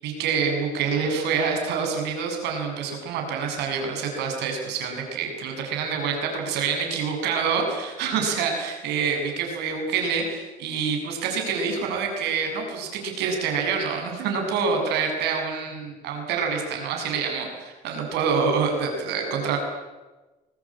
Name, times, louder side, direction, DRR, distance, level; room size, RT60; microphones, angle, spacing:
voice 1, 0.0-19.6, right 5 dB, 85° right, 3 dB, 7.5 m, -26 dB
25.5 x 19.5 x 8.9 m, 1.1 s
cardioid pair, 110°, 17 cm